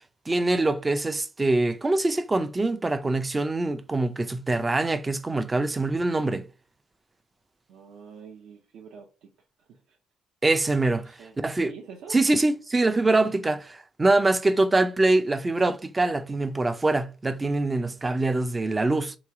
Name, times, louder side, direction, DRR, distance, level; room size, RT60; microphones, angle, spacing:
voice 1, 0.3-6.5 10.4-11.1 11.4-11.7 12.1-13.6 14.0-19.2, right 2 dB, 15° right, 0.4 m, -24 dB
voice 2, 7.7-9.3 9.7-10.0 10.9-11.4 11.7-12.2 13.2-13.3, right 6 dB, 70° right, 0.8 m, -45 dB
3.1 x 3.0 x 4.6 m
cardioid pair, 135°, 0 cm